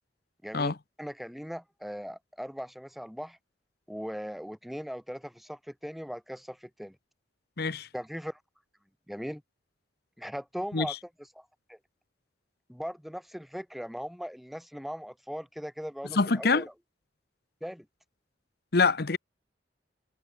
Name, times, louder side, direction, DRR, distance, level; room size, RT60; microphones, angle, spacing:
voice 1, 0.4-3.4 3.9-7.0 7.9-8.4 9.1-9.4 10.2-11.0 11.3-11.8 12.7-16.7 17.6-17.9, equal, ahead, 1.2 m, -39 dB
voice 2, 7.6-7.9 10.7-10.9 16.2-16.6 18.7-19.2, left 4 dB, 60° left, 0.9 m, -25 dB
head